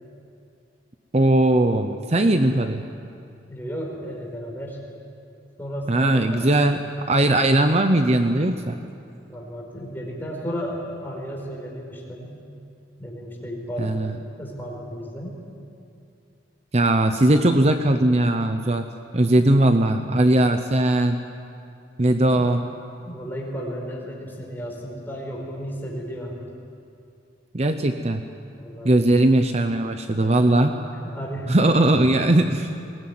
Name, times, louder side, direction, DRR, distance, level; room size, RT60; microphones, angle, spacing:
voice 1, 1.1-2.8 5.9-6.8 7.1-8.8 13.8-14.1 16.7-18.9 19.1-21.2 22.0-22.6 27.5-28.2 28.8-30.7 31.5-32.7, right 1 dB, 35° right, 7 dB, 0.8 m, -19 dB
voice 2, 3.5-4.8 5.6-6.5 9.3-12.4 13.0-14.0 14.4-15.3 22.2-22.5 23.0-26.4 27.6-27.8 28.6-29.1 30.2-30.5 30.9-32.4, equal, 10° left, -1 dB, 4.6 m, -34 dB
21.5 x 18.5 x 9.5 m, 2.6 s
head